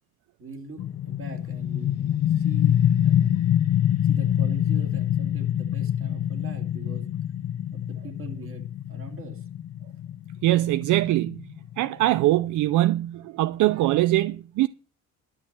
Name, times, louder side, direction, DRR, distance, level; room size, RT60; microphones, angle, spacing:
voice 1, 0.4-3.5 4.0-7.1 7.7-9.5, right 3 dB, 45° right, 2.8 m, -43 dB
sound 1, 0.8-12.2, left 10 dB, 55° left, 0.6 m, -25 dB
voice 2, 10.4-11.5 11.8-14.7, right 16 dB, 75° right, 0.5 m, -22 dB
12.0 x 6.2 x 7.7 m
cardioid pair, 90°, 30 cm